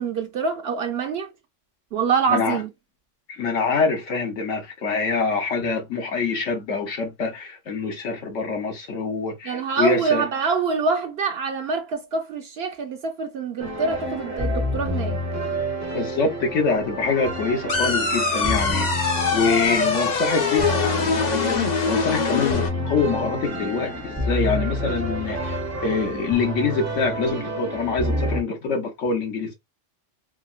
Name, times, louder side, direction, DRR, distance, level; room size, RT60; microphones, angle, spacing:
voice 1, 0.0-1.3 1.9-2.7 9.4-15.2, right 5 dB, 60° right, 0.8 m, -25 dB
voice 2, 2.3-2.6 3.3-10.2 15.8-29.6, left 4 dB, 80° left, 1.2 m, -25 dB
sound 1, 13.6-28.4, equal, 20° right, 0.5 m, -29 dB
sound 2, 17.7-22.7, left 4 dB, 45° left, 0.6 m, -23 dB
3.5 x 2.0 x 2.4 m
omnidirectional pair, 1.3 m